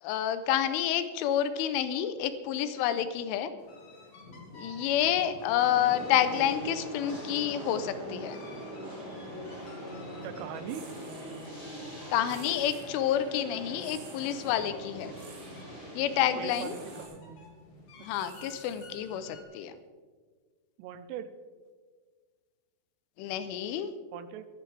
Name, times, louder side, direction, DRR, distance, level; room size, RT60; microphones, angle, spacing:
voice 1, 0.0-3.5 4.5-8.4 12.1-15.1 16.0-16.8 18.0-19.8 23.2-23.9, left 10 dB, 85° left, 11 dB, 3.3 m, -29 dB
sound 1, 3.6-19.4, left 1 dB, 45° left, 2.4 m, -51 dB
sound 2, 5.6-17.1, right 1 dB, 25° left, 5.4 m, -42 dB
voice 2, 10.2-10.9 16.4-17.5 18.2-18.3 20.8-21.3 24.1-24.5, right 9 dB, 90° right, 12 dB, 3.3 m, -41 dB
sound 3, 10.7-11.5 12.3-12.9 13.8-14.5 15.1-15.6 16.5-17.2 18.1-19.2, right 8 dB, 70° right, 3.5 m, -54 dB
22.5 x 11.0 x 3.4 m, 1.5 s
omnidirectional pair, 5.5 m